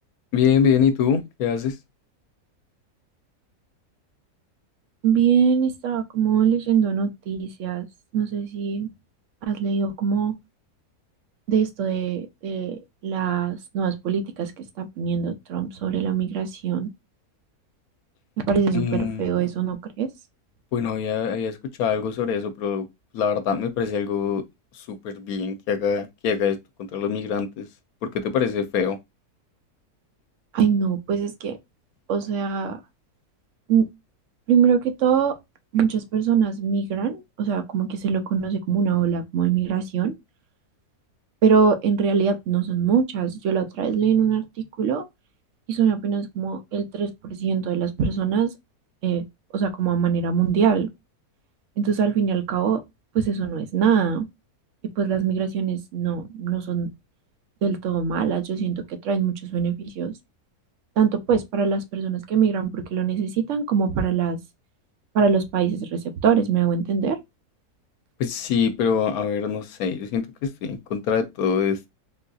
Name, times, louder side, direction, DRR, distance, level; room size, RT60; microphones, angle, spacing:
voice 1, 0.3-1.7 18.7-19.2 20.7-22.9 23.1-24.4 24.7-26.6 26.9-27.7 28.1-29.0 68.2-71.9, left 7 dB, 70° left, 1.0 m, -24 dB
voice 2, 5.0-7.9 8.1-8.9 9.5-10.3 11.5-16.9 18.5-20.1 30.5-31.6 32.1-32.8 33.7-33.9 34.5-35.4 35.7-40.1 41.4-45.0 45.7-48.5 49.0-49.2 49.5-50.9 51.8-52.8 53.1-54.3 55.0-56.9 57.6-60.1 61.0-64.4 65.1-67.2, right 7 dB, 60° right, 0.9 m, -23 dB
3.8 x 2.6 x 2.2 m
omnidirectional pair, 1.6 m